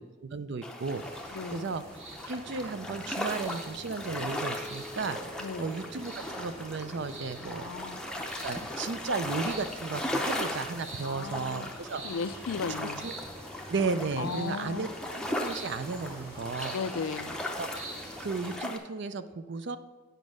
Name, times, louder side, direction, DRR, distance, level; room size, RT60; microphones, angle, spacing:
voice 1, 0.0-1.8 2.3-7.6 8.2-12.0 13.0-13.1 13.7-14.9 15.3-16.7 17.6-17.7 18.2-19.8, right 4 dB, 55° right, 12 dB, 0.5 m, -34 dB
sound 1, 0.6-18.8, left 1 dB, 5° left, 0.6 m, -38 dB
sound 2, 0.8-18.6, right 1 dB, 30° right, 2.3 m, -46 dB
voice 2, 1.3-1.8 5.4-5.8 7.6-8.0 11.0-11.8 12.0-13.0 14.2-14.9 16.7-17.4, left 5 dB, 75° left, 14 dB, 0.4 m, -36 dB
sound 3, 2.9-9.5, right 1 dB, 75° right, 1.3 m, -51 dB
9.0 x 5.3 x 6.2 m, 1.3 s
head